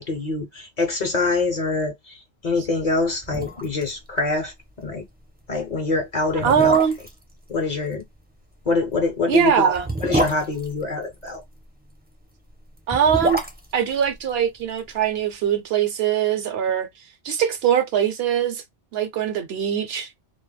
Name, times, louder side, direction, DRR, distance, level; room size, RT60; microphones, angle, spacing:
voice 1, 0.0-5.1 5.5-6.8 7.5-8.0 8.7-9.7 10.0-11.4, left 3 dB, 50° left, 0.6 m, -25 dB
sound 1, 2.9-3.0 3.2-3.9 4.2-4.3 4.7-4.9 5.6-5.7 6.3-7.2 8.7-11.4 12.7-14.9 15.2-15.3, right 1 dB, 15° right, 0.4 m, -27 dB
voice 2, 6.4-6.9 9.3-9.9 12.9-13.4 13.7-16.9 17.2-18.6 18.9-20.1, right 8 dB, 70° right, 0.8 m, -21 dB
2.2 x 2.0 x 3.2 m
omnidirectional pair, 1.1 m